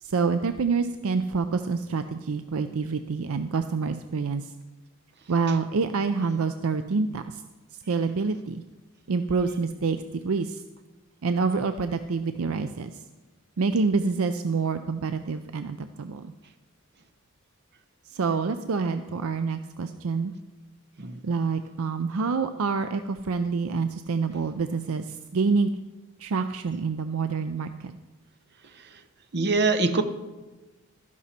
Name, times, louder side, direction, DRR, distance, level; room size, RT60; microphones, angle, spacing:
voice 1, 0.0-4.5 5.3-7.4 7.9-8.6 9.1-10.0 10.2-10.6 11.2-12.9 13.6-16.3 18.1-20.3 21.2-25.7 26.2-27.9, right 4 dB, 70° right, 9 dB, 0.5 m, -27 dB
voice 2, 29.3-30.0, right 3 dB, 50° right, 9 dB, 0.9 m, -23 dB
12.5 x 11.0 x 4.3 m, 1.2 s
head